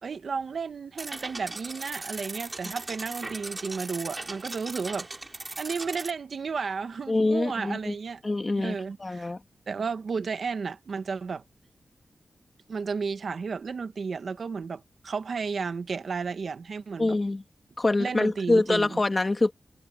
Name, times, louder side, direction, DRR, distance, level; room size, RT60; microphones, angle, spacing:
voice 1, 0.0-5.1 5.6-8.2 8.6-9.3 9.7-11.4 12.7-17.2 18.0-19.0, right 5 dB, 70° right, 1.3 m, -33 dB
sound 1, 1.0-6.1, right 2 dB, 30° right, 2.5 m, -38 dB
voice 2, 7.1-7.9 8.2-9.4 17.0-17.4 17.8-19.5, left 2 dB, 30° left, 2.3 m, -25 dB
wide cardioid pair, 95°, 0 cm